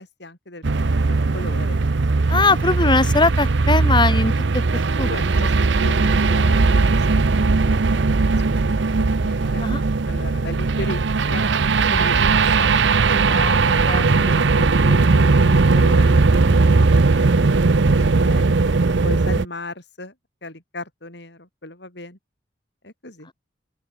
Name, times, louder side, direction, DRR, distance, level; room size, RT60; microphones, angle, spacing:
voice 1, 0.0-1.8 5.1-5.3 5.7-8.1 8.4-9.7 10.1-11.0 11.3-11.5 11.9-12.8 13.5-13.7 14.1-16.9 17.3-20.1 20.4-22.2 22.8-23.3, left 2 dB, 65° left, 6.4 m, -37 dB
sound 1, 0.6-19.5, right 3 dB, 70° right, 0.7 m, -18 dB
voice 2, 2.3-5.1 5.4-5.5 9.6-9.8 13.1-14.3, left 3 dB, 25° left, 3.2 m, -22 dB
open air
head